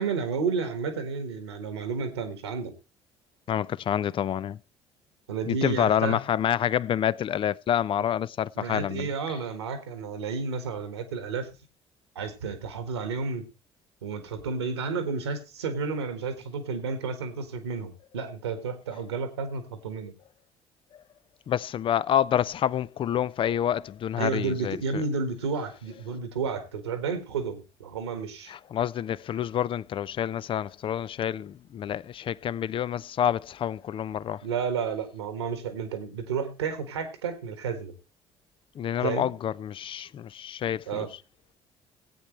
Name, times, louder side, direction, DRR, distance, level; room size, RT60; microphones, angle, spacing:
voice 1, 0.0-2.7 5.3-6.2 8.5-11.5 12.1-13.5 14.0-20.1 24.2-28.5 34.4-37.9 39.0-39.4 40.9-41.1, right 5 dB, 85° right, 1.6 m, -31 dB
voice 2, 3.5-4.6 5.5-9.1 21.5-25.0 28.5-34.4 38.8-41.1, left 10 dB, 40° left, 0.5 m, -28 dB
18.0 x 8.6 x 3.2 m
figure-of-eight pair, 55°, 14 cm